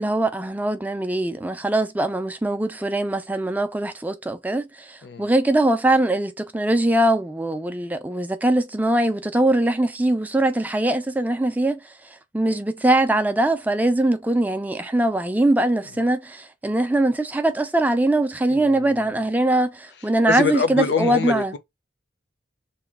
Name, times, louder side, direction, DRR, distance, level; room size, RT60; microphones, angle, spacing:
voice 1, 0.0-11.8 12.3-21.5, right 1 dB, 10° right, 0.3 m, -22 dB
voice 2, 18.5-19.1 20.0-21.6, left 6 dB, 65° left, 0.5 m, -26 dB
3.0 x 2.3 x 3.4 m
head